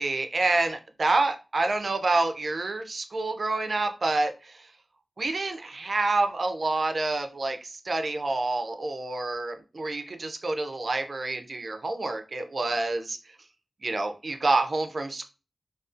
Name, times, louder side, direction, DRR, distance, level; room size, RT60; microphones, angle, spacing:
voice 1, 0.0-4.7 5.2-13.2 13.8-15.2, right 2 dB, 60° right, 6 dB, 0.4 m, -28 dB
2.4 x 2.3 x 2.4 m, 0.31 s
cardioid pair, 60°, 0 cm